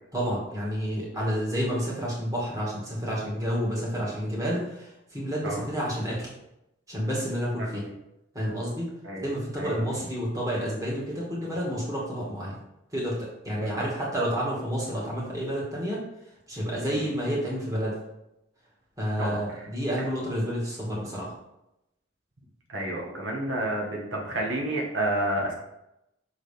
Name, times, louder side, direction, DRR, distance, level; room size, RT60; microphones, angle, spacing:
voice 1, 0.1-6.3 6.9-7.8 8.3-8.9 9.2-12.6 12.9-16.0 16.5-18.0 19.0-21.3, equal, 15° right, -5 dB, 2.1 m, -30 dB
voice 2, 7.6-7.9 9.0-9.3 9.6-9.8 13.6-13.9 16.9-17.1 19.2-19.4 22.7-25.5, right 1 dB, 75° right, -2 dB, 1.6 m, -30 dB
6.1 x 3.9 x 5.2 m, 0.85 s
head